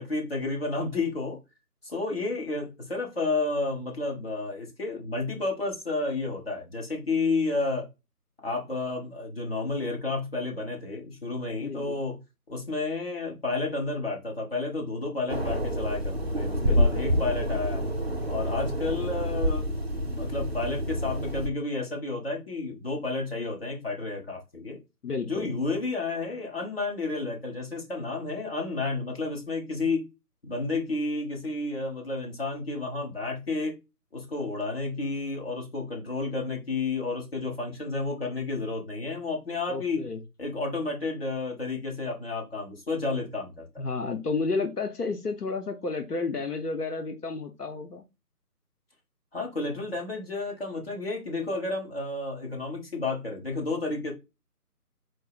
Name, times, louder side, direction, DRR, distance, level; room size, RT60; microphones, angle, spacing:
voice 1, 0.0-1.4 1.8-7.9 8.4-12.2 12.5-17.8 18.3-24.8 25.2-30.0 30.4-33.8 34.1-40.0 40.4-43.6 49.3-54.1, left 3 dB, 40° left, 1.2 m, -31 dB
voice 2, 11.6-12.0 16.6-17.1 25.0-25.5 39.7-40.2 43.8-48.0, left 4 dB, 75° left, 0.8 m, -31 dB
sound 1, 15.3-21.5, equal, 45° right, 0.4 m, -28 dB
4.6 x 2.1 x 4.7 m
figure-of-eight pair, 155°, 47 cm